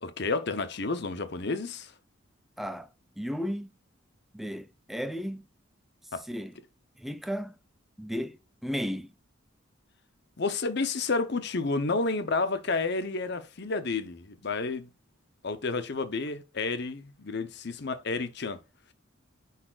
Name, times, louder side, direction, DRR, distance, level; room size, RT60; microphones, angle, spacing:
voice 1, 0.0-1.9 6.1-6.3 10.4-14.9 15.4-18.6, left 3 dB, 55° left, 0.8 m, -30 dB
voice 2, 2.6-2.9 3.2-3.7 4.3-5.5 6.3-6.5 7.0-7.5 8.0-9.1, equal, ahead, 0.5 m, -34 dB
9.8 x 4.2 x 2.5 m
head